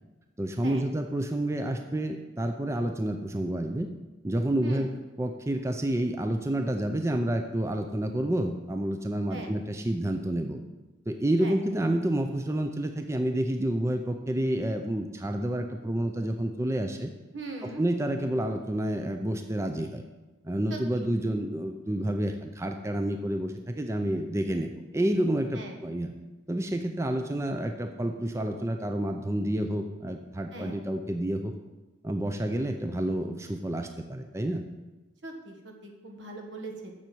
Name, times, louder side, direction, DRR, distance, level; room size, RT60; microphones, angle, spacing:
voice 1, 0.4-3.9 4.2-4.9 5.2-10.6 11.1-17.1 17.6-20.0 20.4-26.1 26.5-31.5 32.0-34.6, right 1 dB, 15° right, 5 dB, 0.5 m, -29 dB
voice 2, 17.3-17.8 20.7-21.1 25.5-25.8 30.5-30.8 35.2-36.9, right 2 dB, 75° right, 2 dB, 1.7 m, -40 dB
7.4 x 6.7 x 7.7 m, 1.1 s
head